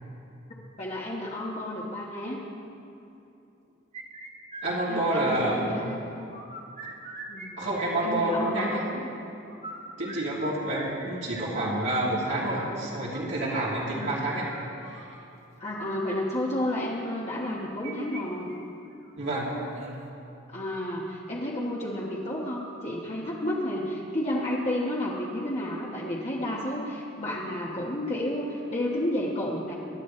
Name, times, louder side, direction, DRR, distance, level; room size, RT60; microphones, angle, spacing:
voice 1, 0.8-2.4 4.9-6.0 7.3-7.7 8.0-9.1 13.9-14.2 15.6-18.5 20.5-29.7, left 1 dB, 35° left, -5 dB, 1.3 m, -31 dB
sound 1, 3.9-5.8 6.2-7.5 7.7-8.8 9.4-15.1 15.8-16.1 17.4-18.2 18.5-18.6 19.0-19.1 19.7-20.1, right 2 dB, 35° right, 1.4 m, -43 dB
voice 2, 4.6-5.6 7.6-8.8 10.0-14.5 14.9-15.1 19.2-19.6, right 1 dB, 70° right, -7 dB, 2.7 m, -28 dB
24.0 x 11.5 x 3.3 m, 2.7 s
head